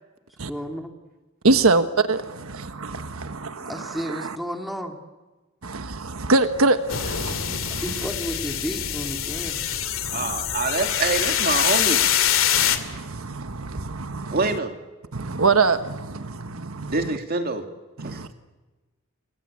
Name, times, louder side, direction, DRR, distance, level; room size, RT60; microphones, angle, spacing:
voice 1, 0.4-0.9 3.6-5.0 7.8-9.6 18.1-18.2, equal, ahead, 2.6 m, -32 dB
voice 2, 1.4-4.3 5.6-7.8 10.0-10.4 12.5-14.4 15.1-17.0 18.0-18.3, right 3 dB, 80° right, 1.3 m, -24 dB
sound 1, 6.9-12.8, left 9 dB, 75° left, 2.3 m, -24 dB
voice 3, 10.1-12.0 14.3-14.7 16.9-17.6 18.0-18.3, right 3 dB, 45° right, 2.8 m, -26 dB
29.5 x 22.0 x 8.6 m
head